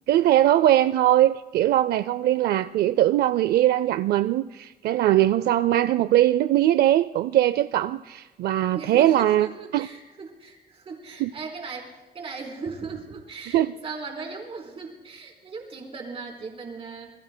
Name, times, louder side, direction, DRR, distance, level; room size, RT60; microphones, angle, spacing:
voice 1, 0.1-9.5 9.7-9.9 11.2-11.3 13.5-13.7, right 13 dB, 75° right, 0.4 m, -21 dB
voice 2, 8.7-17.1, right 4 dB, 35° right, 3.6 m, -38 dB
28.0 x 21.0 x 2.2 m
cardioid pair, 165°, 17 cm